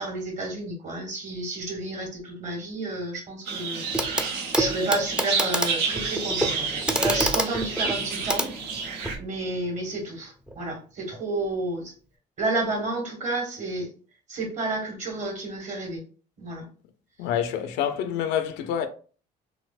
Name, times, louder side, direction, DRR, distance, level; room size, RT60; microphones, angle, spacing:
voice 1, 0.0-8.5 9.2-11.9 12.4-13.9 14.3-16.0 16.4-16.7, right 2 dB, 45° right, 1.4 m, -31 dB
sound 1, 3.4-9.2, right 4 dB, 85° right, 0.7 m, -30 dB
Clock, 3.9-4.3 4.5-9.2 10.5-10.6, right 1 dB, 5° right, 0.4 m, -28 dB
voice 2, 17.2-18.9, left 9 dB, 85° left, 0.5 m, -27 dB
4.2 x 2.1 x 2.4 m
cardioid pair, 110°, 17 cm